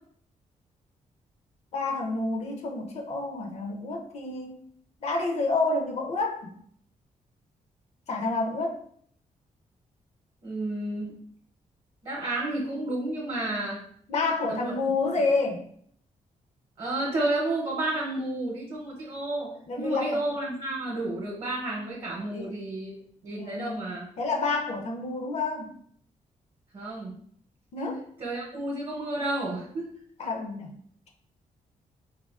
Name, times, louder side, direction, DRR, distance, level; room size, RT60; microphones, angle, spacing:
voice 1, 1.7-4.6 5.0-6.6 8.1-8.8 14.1-15.6 19.7-20.2 22.3-22.5 23.3-23.8 24.2-25.7 27.7-28.0 30.2-30.8, left 3 dB, 55° left, 2 dB, 0.5 m, -29 dB
voice 2, 10.4-11.1 12.0-13.8 14.4-14.8 16.8-22.9 23.2-24.1 26.7-27.1 28.2-29.9, right 2 dB, 45° right, -3 dB, 0.7 m, -31 dB
3.5 x 2.3 x 2.3 m, 0.63 s
wide cardioid pair, 150°, 14 cm